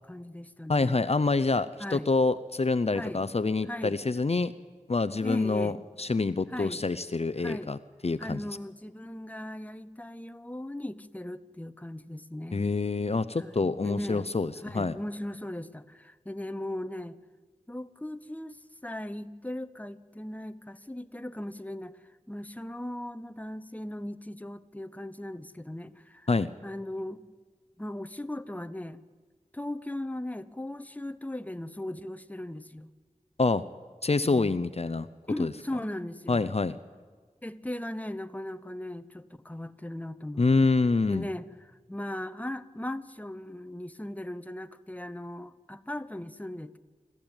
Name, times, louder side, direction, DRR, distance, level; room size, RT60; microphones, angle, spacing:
voice 1, 0.1-1.0 1.8-2.1 2.9-3.2 3.7-4.0 5.2-5.8 6.5-6.8 7.4-7.7 8.2-12.6 13.4-14.3 14.6-17.2 17.7-21.9 22.3-26.3 26.6-27.3 27.8-29.0 29.5-32.9 34.2-34.5 35.3-36.5 37.4-40.5 41.1-41.5 41.9-46.8, left 1 dB, 10° left, 12 dB, 0.9 m, -38 dB
voice 2, 0.7-4.5 4.9-8.4 12.5-15.0 26.3-26.5 33.4-33.6 34.0-35.1 35.4-35.5 36.3-36.8 40.4-41.3, left 3 dB, 50° left, 13 dB, 0.6 m, -26 dB
27.5 x 13.5 x 9.0 m, 1.5 s
wide cardioid pair, 50°, 13 cm